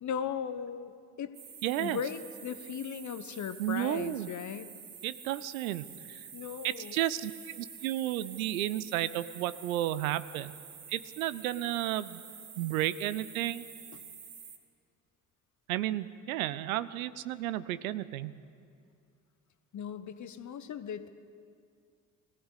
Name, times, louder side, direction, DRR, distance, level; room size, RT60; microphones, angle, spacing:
voice 1, 0.0-0.9 1.2-1.3 1.8-4.7 6.3-7.0 13.9-14.0 19.7-21.1, left 7 dB, 45° left, 11 dB, 1.2 m, -37 dB
sound 1, 1.3-14.6, right 7 dB, 55° right, 2.4 m, -48 dB
voice 2, 1.6-2.0 3.6-4.3 5.0-6.2 6.6-10.5 10.9-12.2 12.6-13.7 15.7-18.3, right 14 dB, 75° right, 16 dB, 0.7 m, -32 dB
21.5 x 15.5 x 8.3 m, 2.3 s
hypercardioid pair, 55°, 42 cm